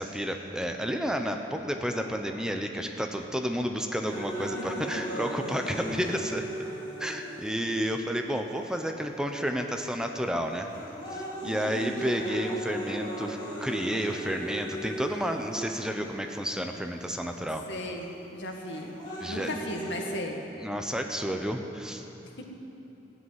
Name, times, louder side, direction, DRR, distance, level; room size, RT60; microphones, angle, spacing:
voice 1, 0.0-6.5 7.0-10.7 11.4-17.6 19.2-19.7 20.6-22.0, equal, 5° right, 4 dB, 0.8 m, -31 dB
sound 1, 4.0-8.0 8.8-8.9 9.7-10.0 10.5-16.0 17.0-17.1 18.5-20.0, right 1 dB, 25° left, 3.4 m, -37 dB
voice 2, 4.5-5.2 11.4-12.0 17.7-18.9 19.3-20.4 22.4-22.5, left 1 dB, 90° left, 2 dB, 1.8 m, -37 dB
15.5 x 8.0 x 9.6 m, 3.0 s
head